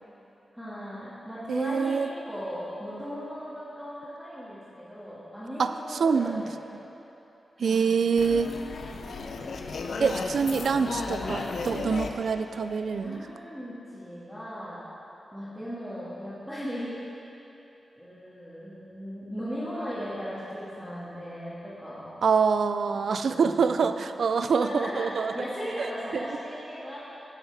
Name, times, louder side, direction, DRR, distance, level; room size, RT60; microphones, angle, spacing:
voice 1, 0.5-6.6 7.6-7.9 10.2-10.8 11.2-11.6 13.0-14.8 15.3-17.0 18.0-22.1 22.9-23.9 24.6-27.0, equal, 5° left, -12 dB, 2.2 m, -37 dB
voice 2, 1.5-2.1 5.6-5.7 6.0-6.4 7.6-8.5 10.0-11.4 11.7-13.2 22.2-25.3, right 5 dB, 75° right, 10 dB, 0.4 m, -25 dB
sound 1, 8.2-13.3, left 4 dB, 75° left, 0.7 m, -35 dB
13.0 x 7.2 x 5.0 m, 3.0 s
wide cardioid pair, 115°, 0 cm